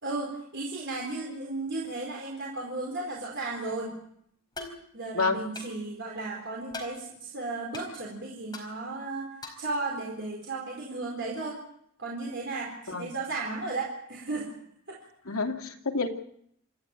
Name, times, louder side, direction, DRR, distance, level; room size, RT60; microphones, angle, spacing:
voice 1, 0.0-3.9 4.9-9.3 9.6-11.6 12.0-14.5 14.9-15.0, right 3 dB, 55° right, -2 dB, 4.4 m, -34 dB
sound 1, 4.5-4.8 5.5-5.7 6.7-6.9 7.7-7.8 8.5-8.7 9.4-9.7, left 3 dB, 20° left, 4.6 m, -40 dB
voice 2, 15.3-16.1, left 4 dB, 80° left, 4 dB, 2.6 m, -28 dB
27.0 x 13.0 x 9.0 m, 0.72 s
head